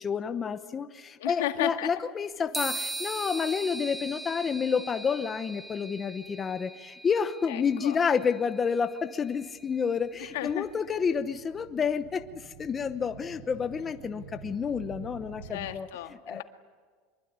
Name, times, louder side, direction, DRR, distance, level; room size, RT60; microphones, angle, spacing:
voice 1, 0.0-15.9 16.3-16.4, left 6 dB, 20° left, 9 dB, 0.9 m, -29 dB
voice 2, 1.2-1.9 7.5-8.0 10.2-10.7 12.9-13.1 15.5-16.4, left 15 dB, 85° left, 6 dB, 1.9 m, -34 dB
sound 1, 2.5-10.2, right 2 dB, 10° right, 1.2 m, -40 dB
sound 2, 9.2-15.7, right 6 dB, 90° right, 4.2 m, -49 dB
24.5 x 23.0 x 9.5 m, 1.5 s
supercardioid pair, 150°, 0 cm